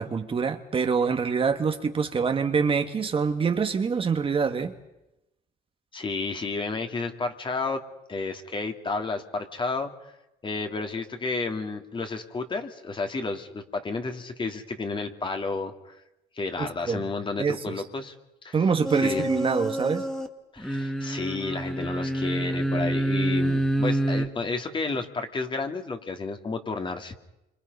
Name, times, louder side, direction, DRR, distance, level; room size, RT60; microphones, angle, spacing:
voice 1, 0.0-4.7 16.6-17.1 17.4-17.8 18.5-20.0, right 5 dB, 35° right, 7 dB, 1.7 m, -25 dB
voice 2, 5.9-7.8 8.1-9.9 10.4-16.0 16.4-18.1 18.4-18.7 19.0-19.3 20.5-27.1, left 3 dB, 30° left, 5 dB, 2.6 m, -31 dB
sound 1, 18.8-20.3 20.6-24.3, right 1 dB, 5° left, 2.2 m, -27 dB
28.0 x 26.0 x 5.5 m, 0.88 s
cardioid pair, 110°, 17 cm